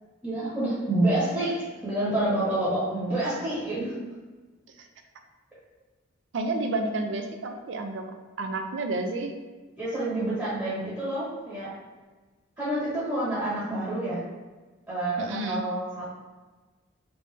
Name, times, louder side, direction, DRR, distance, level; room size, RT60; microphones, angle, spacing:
voice 1, 0.2-1.5 1.8-3.9 9.8-11.7 12.6-14.2 14.9-16.1, right 1 dB, 15° right, -10 dB, 1.0 m, -28 dB
voice 2, 6.3-9.4 15.2-15.6, right 2 dB, 65° right, 5 dB, 0.4 m, -31 dB
3.4 x 2.6 x 3.2 m, 1.3 s
head